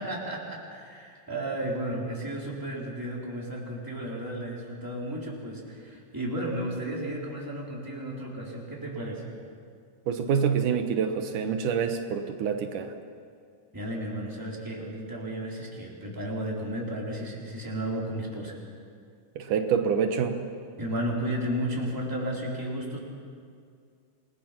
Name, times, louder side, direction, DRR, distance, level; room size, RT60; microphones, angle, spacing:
voice 1, 0.0-9.2 13.7-18.6 20.8-23.0, right 1 dB, 5° right, -4 dB, 3.8 m, -33 dB
voice 2, 10.1-12.9 19.4-20.4, right 7 dB, 80° right, 6 dB, 2.6 m, -26 dB
28.5 x 20.0 x 6.0 m, 2.3 s
omnidirectional pair, 3.6 m